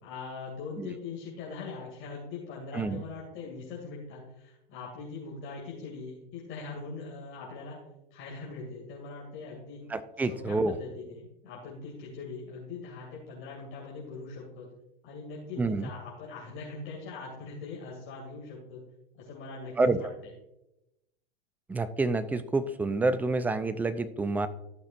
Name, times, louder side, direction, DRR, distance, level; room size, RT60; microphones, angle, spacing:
voice 1, 0.0-7.8 8.1-9.8 10.2-14.7 15.0-18.8 19.1-20.3, left 4 dB, 40° left, -4 dB, 2.5 m, -42 dB
voice 2, 9.9-10.8 15.6-15.9 19.8-20.0 21.7-24.5, right 3 dB, 5° right, 13 dB, 0.3 m, -28 dB
14.5 x 5.9 x 2.6 m, 0.92 s
hypercardioid pair, 100°, 31 cm